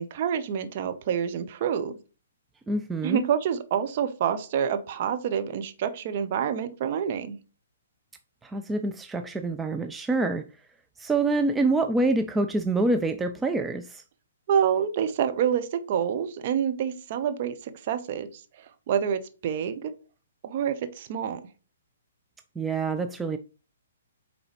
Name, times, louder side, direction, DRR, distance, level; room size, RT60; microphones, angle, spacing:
voice 1, 0.0-2.0 3.0-7.4 14.5-18.4 18.9-19.9 20.4-21.4, right 8 dB, 45° right, 0.9 m, -27 dB
voice 2, 2.7-3.3 8.4-10.5 11.0-14.0 22.6-23.4, right 2 dB, 10° right, 0.4 m, -26 dB
8.7 x 3.8 x 3.1 m
figure-of-eight pair, 125°, 0 cm